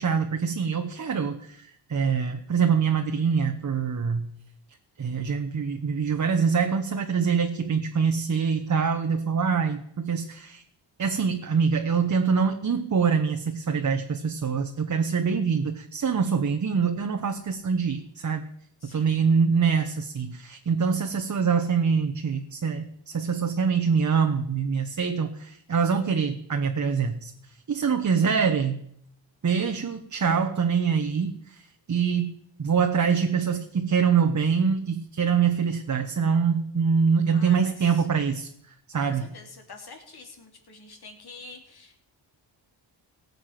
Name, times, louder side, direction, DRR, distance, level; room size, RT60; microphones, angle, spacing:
voice 1, 0.0-4.3 5.0-10.6 11.0-18.4 18.9-27.3 27.7-28.8 29.4-38.5 38.9-39.3, right 6 dB, 40° right, 5 dB, 1.1 m, -24 dB
voice 2, 18.8-19.1 37.3-38.1 39.0-42.0, left 3 dB, 55° left, 3 dB, 3.2 m, -47 dB
17.5 x 6.9 x 5.9 m, 0.72 s
cardioid pair, 70°, 46 cm